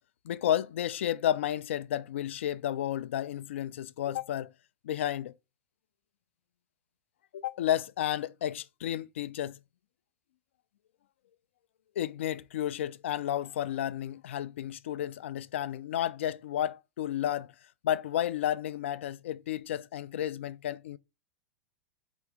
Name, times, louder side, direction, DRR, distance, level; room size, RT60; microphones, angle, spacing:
voice 1, 0.2-4.5 4.8-5.3 7.3-9.6 12.0-17.5 17.8-21.0, left 11 dB, 60° left, 0.3 m, -32 dB
4.4 x 3.0 x 3.6 m
figure-of-eight pair, 90°, 8 cm